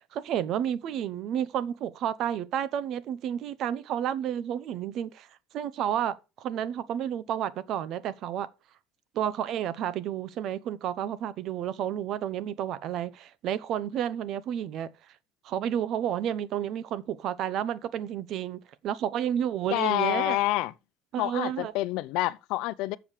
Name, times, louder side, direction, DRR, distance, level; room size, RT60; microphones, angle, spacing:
voice 1, 0.0-5.3 5.5-8.5 9.1-14.9 15.4-20.4 21.1-21.7, right 10 dB, 55° right, 0.8 m, -31 dB
voice 2, 19.7-20.7 21.2-23.0, left 17 dB, 75° left, 0.6 m, -27 dB
7.3 x 7.1 x 6.4 m
cardioid pair, 140°, 0 cm